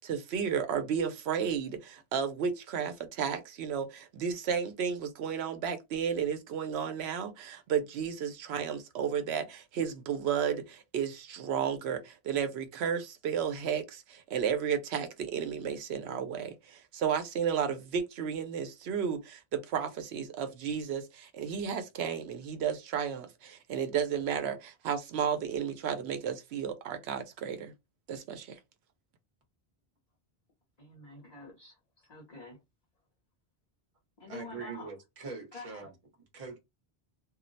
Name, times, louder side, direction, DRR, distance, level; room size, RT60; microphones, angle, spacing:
voice 1, 0.0-27.7 28.1-28.6, right 7 dB, 85° right, 0.9 m, -33 dB
voice 2, 30.8-32.6 34.2-34.9 35.5-35.9, left 3 dB, 45° left, 0.9 m, -47 dB
voice 3, 34.3-35.9 36.3-36.6, right 4 dB, 35° right, 0.9 m, -42 dB
2.3 x 2.1 x 3.8 m
omnidirectional pair, 1.0 m